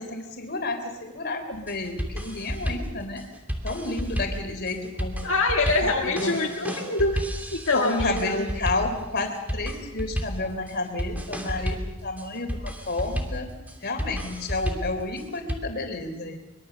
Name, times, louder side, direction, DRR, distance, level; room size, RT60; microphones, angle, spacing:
voice 1, 0.0-3.3 3.6-5.2 5.8-6.4 7.7-13.5 13.8-16.4, left 2 dB, 50° left, 6 dB, 3.6 m, -31 dB
sound 1, 1.5-15.6, equal, 10° right, 2.8 m, -32 dB
voice 2, 5.2-7.2 7.5-8.4, left 2 dB, 70° left, 0 dB, 2.0 m, -24 dB
24.0 x 23.0 x 6.9 m, 1.0 s
head